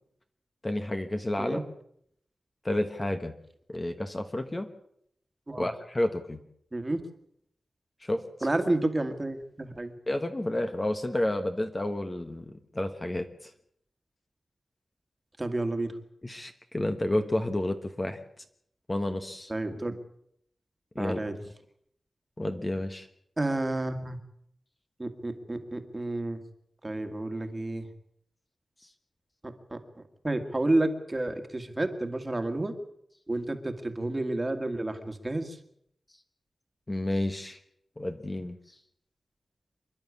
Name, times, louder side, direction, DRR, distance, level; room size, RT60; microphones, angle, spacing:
voice 1, 0.6-1.6 2.6-3.3 3.7-4.7 5.6-6.4 8.0-8.2 10.1-13.5 16.2-18.2 18.9-19.5 20.9-21.2 22.4-23.1 36.9-37.6 38.0-38.6, left 1 dB, 20° left, 6 dB, 1.3 m, -30 dB
voice 2, 8.4-9.9 15.4-15.9 19.5-19.9 21.0-21.4 23.4-24.2 25.0-26.4 26.8-27.9 29.4-29.8 30.2-32.7 33.3-35.6, right 2 dB, 20° right, 7 dB, 2.0 m, -30 dB
27.0 x 11.5 x 8.5 m, 0.72 s
wide cardioid pair, 140°, 0 cm